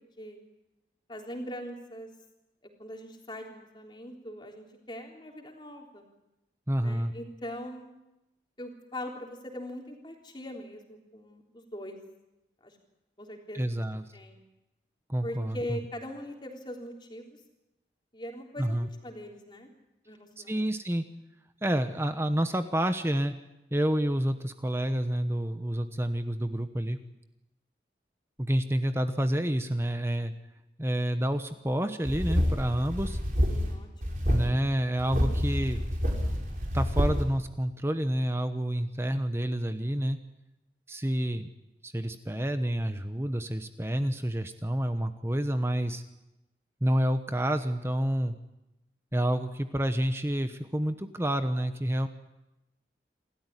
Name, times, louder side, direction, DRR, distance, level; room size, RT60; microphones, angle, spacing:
voice 1, 1.1-2.1 2.8-6.1 6.8-7.9 8.6-12.0 12.6-12.7 13.2-13.6 14.1-14.4 15.2-17.3 18.1-19.7 20.1-20.6 33.5-34.2, equal, 25° left, 2 dB, 3.5 m, -41 dB
voice 2, 6.7-7.1 13.5-14.1 15.1-15.8 18.6-18.9 20.4-21.0 21.6-23.3 23.7-27.0 28.4-30.3 30.8-33.2 34.3-35.8 36.7-40.2 40.9-41.5 41.8-46.0 46.8-48.4 49.1-52.1, right 1 dB, 15° right, 9 dB, 1.0 m, -29 dB
sound 1, 32.0-33.7 34.0-34.5 35.0-37.2, equal, 50° right, 4.7 m, -28 dB
27.5 x 13.5 x 9.9 m, 0.94 s
head